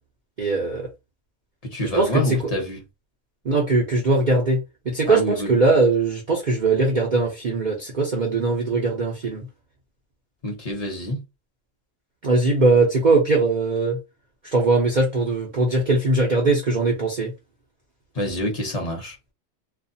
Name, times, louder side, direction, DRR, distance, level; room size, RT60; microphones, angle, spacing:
voice 1, 0.4-0.9 1.9-2.4 3.4-9.4 12.2-14.0 14.5-17.3, right 3 dB, 45° right, 0.7 m, -20 dB
voice 2, 1.6-2.8 5.1-5.6 10.4-11.2 18.1-19.2, left 1 dB, 30° left, 0.8 m, -27 dB
2.5 x 2.2 x 2.6 m
omnidirectional pair, 1.4 m